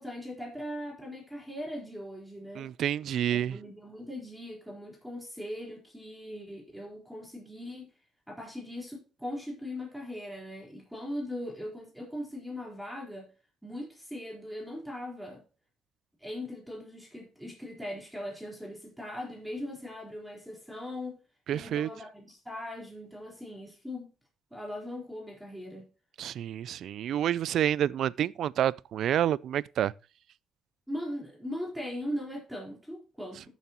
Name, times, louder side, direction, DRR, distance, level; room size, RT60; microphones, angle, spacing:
voice 1, 0.0-2.7 3.3-7.9 8.3-13.3 13.6-15.4 16.2-21.2 21.5-24.1 24.5-25.9 30.9-33.5, left 1 dB, 5° right, 4.4 m, -39 dB
voice 2, 2.6-3.6 21.5-21.9 26.2-29.9, right 10 dB, 70° right, 0.3 m, -28 dB
14.0 x 7.1 x 3.0 m
cardioid pair, 90°, 0 cm